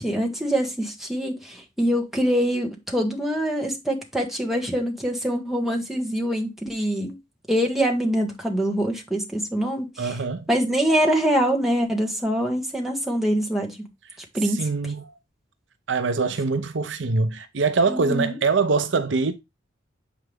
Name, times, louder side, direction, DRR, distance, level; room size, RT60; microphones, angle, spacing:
voice 1, 0.0-7.2 7.5-10.1 10.5-13.9 14.3-14.6 17.9-18.4, equal, ahead, 1.4 m, -24 dB
voice 2, 10.0-10.5 14.4-15.1 15.9-19.3, right 4 dB, 65° right, 0.6 m, -23 dB
7.7 x 4.8 x 3.4 m
head